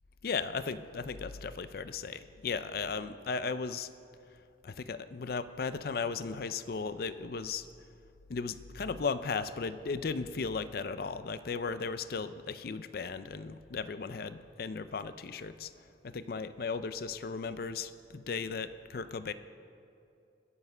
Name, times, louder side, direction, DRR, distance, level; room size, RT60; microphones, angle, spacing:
voice 1, 0.2-3.9 4.6-7.7 8.3-15.7 16.0-19.3, left 5 dB, 55° left, 13 dB, 0.4 m, -36 dB
21.0 x 7.2 x 5.5 m, 2.6 s
head